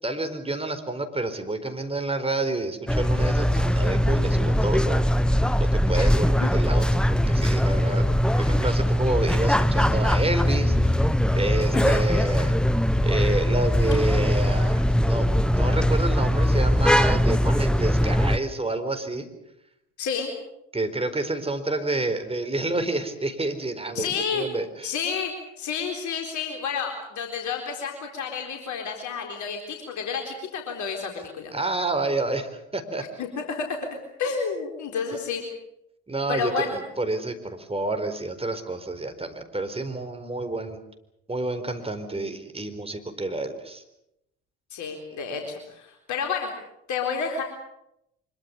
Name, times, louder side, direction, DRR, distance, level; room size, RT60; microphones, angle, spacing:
voice 1, 0.0-5.0 5.6-8.0 8.3-11.1 11.3-12.5 13.0-19.3 20.7-24.9 31.5-33.0 36.1-40.8 41.3-43.8, right 2 dB, 15° right, 7 dB, 4.4 m, -29 dB
sound 1, 2.9-18.4, equal, ahead, 1.0 m, -21 dB
voice 2, 11.7-12.0 20.0-20.3 23.9-24.5 24.8-31.5 33.2-35.4 36.3-36.8 44.7-46.5 46.9-47.4, left 6 dB, 55° left, 3 dB, 4.1 m, -30 dB
24.5 x 23.0 x 7.0 m, 0.82 s
hypercardioid pair, 55°, 35 cm